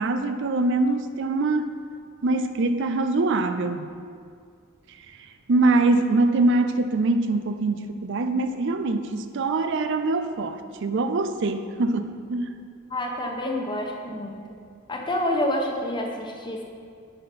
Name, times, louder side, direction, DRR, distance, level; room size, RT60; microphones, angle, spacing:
voice 1, 0.0-1.7 2.2-3.9 5.5-12.6, right 2 dB, 60° right, 9 dB, 0.5 m, -23 dB
voice 2, 12.9-14.4 14.9-16.6, left 1 dB, 20° left, 0 dB, 1.0 m, -28 dB
9.8 x 5.6 x 5.4 m, 2.2 s
head